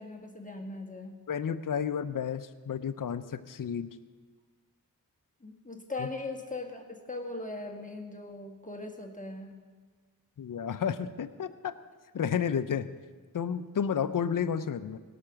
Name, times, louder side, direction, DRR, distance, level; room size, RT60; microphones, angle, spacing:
voice 1, 0.0-1.1 5.4-9.5, left 2 dB, 20° left, 2 dB, 1.7 m, -39 dB
voice 2, 1.3-3.9 6.0-6.1 10.4-11.7 12.1-12.9 13.3-15.0, left 7 dB, 60° left, 12 dB, 0.7 m, -31 dB
17.5 x 6.0 x 6.3 m, 1.5 s
cardioid pair, 40°, 37 cm